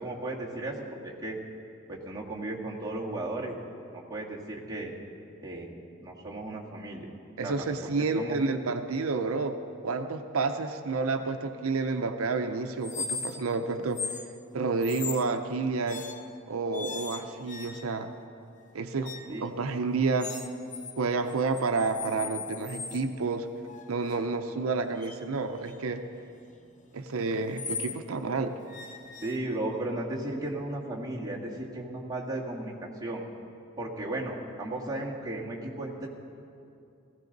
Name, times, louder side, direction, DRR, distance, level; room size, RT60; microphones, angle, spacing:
voice 1, 0.0-1.4 1.9-3.6 3.9-5.0 5.4-5.7 6.0-7.1 7.4-7.7 8.1-8.4 19.3-19.4 29.2-33.2 33.8-36.1, right 2 dB, 20° right, -4 dB, 1.8 m, -35 dB
voice 2, 7.4-9.6 9.8-14.2 14.5-16.0 16.5-18.1 18.7-20.4 21.0-23.5 23.9-26.0 26.9-28.6, right 4 dB, 90° right, 7 dB, 0.6 m, -30 dB
sound 1, 12.8-13.6 13.9-14.3 14.8-15.3 15.9-16.4 16.7-18.1 19.0-19.4 20.2-20.9 21.3-23.1 23.7-28.0 28.7-29.8, left 5 dB, 35° left, 0.8 m, -39 dB
17.5 x 15.5 x 4.0 m, 2.6 s
head